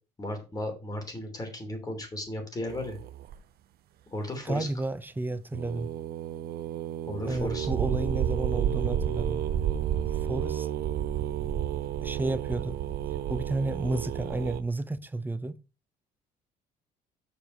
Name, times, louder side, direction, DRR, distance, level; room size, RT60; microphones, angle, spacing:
voice 1, 0.2-3.0 4.1-4.7 7.1-7.7, left 1 dB, 20° left, 3.0 m, -35 dB
sound 1, 2.7-3.3 5.5-14.6, right 10 dB, 65° right, 0.7 m, -31 dB
voice 2, 4.4-5.9 7.2-9.4 10.1-10.7 12.0-12.8 13.3-15.6, right 2 dB, 10° right, 0.6 m, -31 dB
7.0 x 4.7 x 5.3 m
cardioid pair, 110°, 17 cm